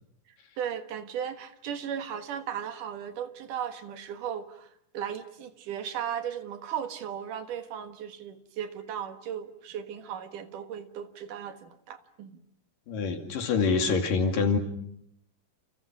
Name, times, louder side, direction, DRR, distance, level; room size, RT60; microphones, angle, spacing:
voice 1, 0.6-12.4, right 9 dB, 70° right, 8 dB, 3.1 m, -36 dB
voice 2, 12.9-14.6, left 4 dB, 75° left, 5 dB, 4.2 m, -25 dB
29.0 x 29.0 x 6.1 m, 0.72 s
omnidirectional pair, 3.9 m